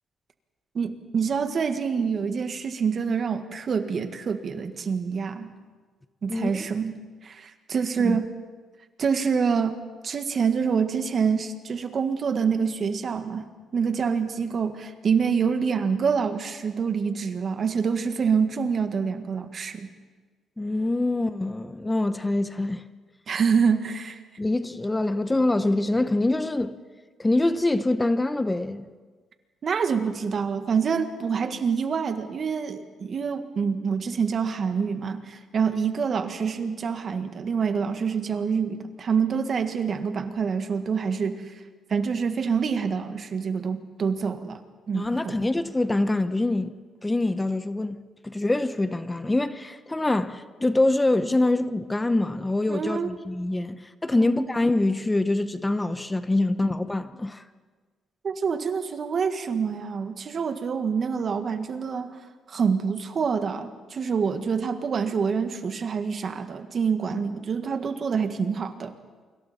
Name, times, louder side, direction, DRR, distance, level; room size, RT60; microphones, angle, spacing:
voice 1, 0.7-5.5 6.2-7.0 7.2-8.3 9.0-9.8 10.0-13.5 13.7-19.9 23.3-24.2 29.6-41.6 41.9-44.6 44.9-45.1 52.7-53.2 54.1-54.5 58.2-62.2 62.5-68.9, right 6 dB, 50° right, 1.7 m, -26 dB
voice 2, 6.3-6.6 8.0-8.2 20.6-22.9 24.4-26.8 27.2-28.9 44.9-46.7 47.0-57.4, left 2 dB, 15° left, 0.9 m, -25 dB
29.0 x 25.0 x 4.3 m
cardioid pair, 90°, 0 cm